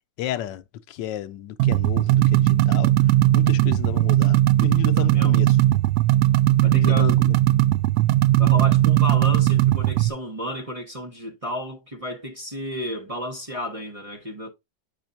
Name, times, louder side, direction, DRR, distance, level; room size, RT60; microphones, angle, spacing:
voice 1, 0.2-2.9 3.3-5.6 6.7-7.3, left 12 dB, 85° left, 1.3 m, -32 dB
sound 1, 1.6-10.1, right 14 dB, 70° right, 1.0 m, -18 dB
voice 2, 5.0-5.4 6.6-7.2 8.4-14.5, equal, 25° right, 1.1 m, -32 dB
8.9 x 5.1 x 2.6 m
omnidirectional pair, 1.9 m